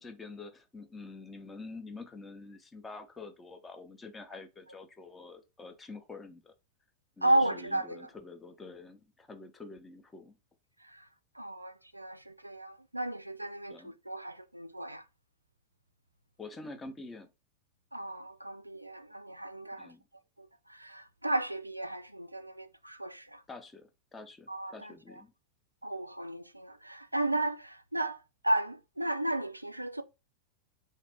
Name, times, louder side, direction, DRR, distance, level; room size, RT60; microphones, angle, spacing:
voice 1, 0.0-6.5 7.2-10.4 13.7-13.9 16.4-17.3 19.8-20.0 23.5-25.3, left 3 dB, 15° left, 0.6 m, -47 dB
voice 2, 7.2-8.1 10.8-11.1 11.4-15.0 17.9-19.9 20.4-23.4 24.5-24.9 25.8-30.0, right 1 dB, 85° right, 0.3 m, -34 dB
2.6 x 2.4 x 3.4 m
figure-of-eight pair, 90°, 0 cm